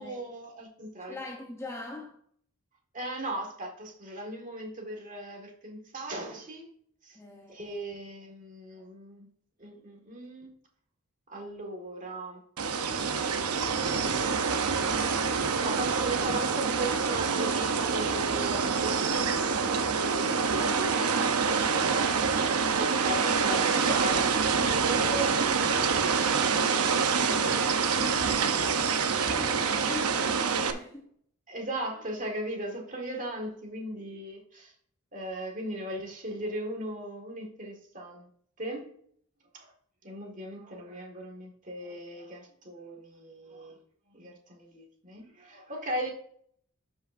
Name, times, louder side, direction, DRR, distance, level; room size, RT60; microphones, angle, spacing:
voice 1, 0.0-1.2 2.9-6.7 7.0-7.2 7.5-9.3 9.6-10.5 11.3-12.4 15.4-20.8 21.1-21.3 22.7-26.4 26.7-27.6 28.3-28.9 31.5-34.7 35.1-38.3 38.6-38.9 39.5-39.7 40.0-43.8 44.1-46.1, right 1 dB, 35° right, 1.8 m, -38 dB
voice 2, 1.1-2.2 7.1-7.8 20.3-22.4 28.3-28.7 29.2-31.1, left 2 dB, 10° left, 0.8 m, -42 dB
sound 1, 12.6-30.7, right 5 dB, 85° right, 0.8 m, -26 dB
12.5 x 5.4 x 2.6 m
head